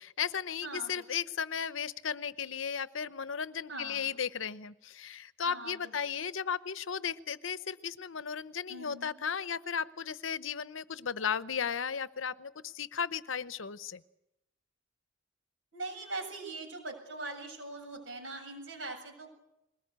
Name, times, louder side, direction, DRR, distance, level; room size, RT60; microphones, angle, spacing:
voice 1, 0.0-14.0, left 7 dB, 75° left, 15 dB, 0.8 m, -35 dB
voice 2, 0.6-1.0 3.7-4.2 5.5-5.9 8.7-9.2 15.7-19.3, right 2 dB, 70° right, 3 dB, 7.5 m, -42 dB
22.0 x 19.5 x 8.2 m, 0.88 s
head